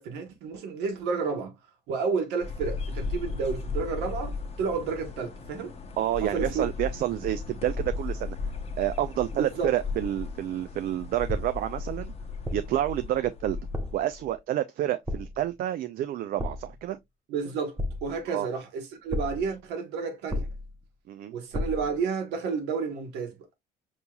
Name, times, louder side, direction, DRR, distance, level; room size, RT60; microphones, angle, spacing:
voice 1, 0.0-1.5 1.9-5.7 6.2-6.7 9.3-9.7 17.3-20.5 21.3-23.4, right 5 dB, 90° right, 1.2 m, -31 dB
sound 1, 2.4-14.4, left 4 dB, 35° left, 0.9 m, -36 dB
voice 2, 6.0-8.4 8.8-12.1 12.5-13.6 13.9-17.0 18.3-18.5 21.1-21.3, right 12 dB, 60° right, 0.4 m, -29 dB
sound 2, 11.3-11.7 12.4-12.9 13.7-14.1 15.1-15.5 16.4-16.8 17.8-18.3 19.1-19.5 20.3-20.8 21.5-22.0, left 1 dB, 15° right, 0.8 m, -33 dB
5.4 x 2.9 x 2.3 m
cardioid pair, 110°, 17 cm